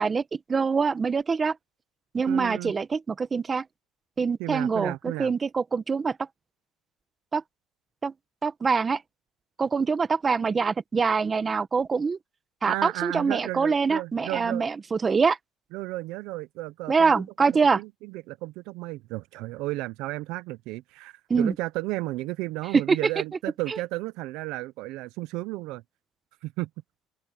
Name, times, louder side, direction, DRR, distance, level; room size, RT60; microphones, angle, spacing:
voice 1, 0.0-1.5 2.1-3.6 4.2-6.2 7.3-7.4 8.0-8.1 8.4-9.0 9.6-12.2 12.6-15.4 16.9-17.8 21.3-21.5 22.7-23.0 23.7-23.8, right 5 dB, 25° right, 1.2 m, -24 dB
voice 2, 2.3-2.7 4.4-5.3 12.7-14.6 15.7-25.8 26.4-26.7, right 19 dB, 75° right, 0.7 m, -33 dB
open air
cardioid pair, 125°, 0 cm